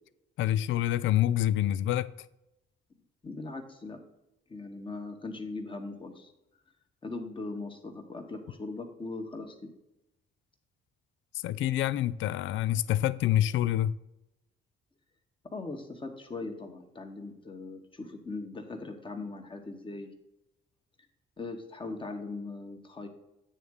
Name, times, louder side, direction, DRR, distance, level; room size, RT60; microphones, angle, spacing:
voice 1, 0.4-2.1 11.3-13.9, left 12 dB, 75° left, 0.4 m, -27 dB
voice 2, 3.2-4.0 4.5-6.3 7.0-9.7 15.5-20.1 21.4-23.1, left 3 dB, 25° left, 1.4 m, -40 dB
9.1 x 3.6 x 6.4 m
cardioid pair, 90°, 20 cm